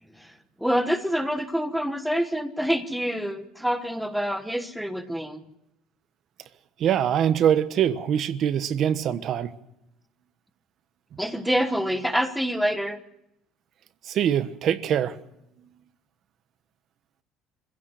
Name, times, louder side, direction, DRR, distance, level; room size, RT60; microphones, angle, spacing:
voice 1, 0.0-5.4 11.2-13.0, equal, ahead, 1.2 m, -27 dB
voice 2, 6.8-9.5 14.0-15.2, right 9 dB, 45° right, 1.2 m, -23 dB
25.0 x 16.5 x 6.4 m
cardioid pair, 160°, 0 cm